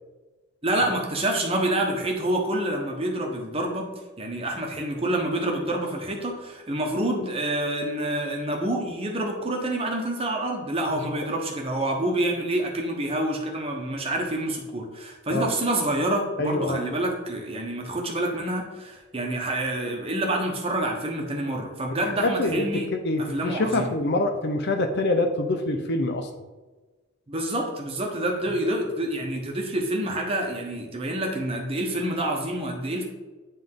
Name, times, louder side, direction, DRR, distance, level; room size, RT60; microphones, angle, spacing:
voice 1, 0.6-3.9 4.2-22.9 23.2-23.9 27.3-33.0, right 1 dB, 25° right, 0 dB, 1.0 m, -27 dB
voice 2, 16.4-16.9 22.0-26.3, left 2 dB, 50° left, 6 dB, 0.6 m, -25 dB
9.6 x 3.5 x 3.7 m, 1.3 s
head